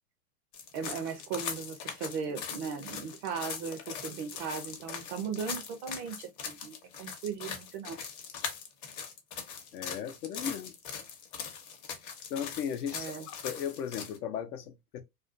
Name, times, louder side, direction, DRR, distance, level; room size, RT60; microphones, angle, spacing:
sound 1, 0.5-14.2, left 7 dB, 40° left, 0.7 m, -41 dB
voice 1, 0.7-8.0 12.9-13.3, right 6 dB, 30° right, 0.4 m, -37 dB
voice 2, 9.7-10.8 12.3-15.0, left 8 dB, 80° left, 0.7 m, -36 dB
2.4 x 2.2 x 2.4 m
hypercardioid pair, 120°, 46 cm